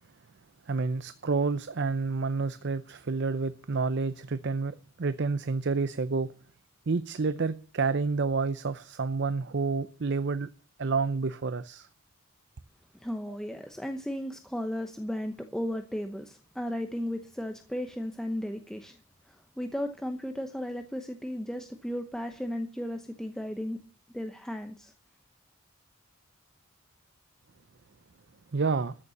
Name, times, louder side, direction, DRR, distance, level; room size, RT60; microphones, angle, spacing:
voice 1, 0.7-6.3 6.9-10.5 10.8-11.9 28.5-28.9, right 4 dB, 55° right, 0.6 m, -29 dB
voice 2, 12.9-19.0 19.3-23.8 24.1-24.9, equal, 5° left, 0.9 m, -35 dB
14.0 x 6.9 x 7.1 m
head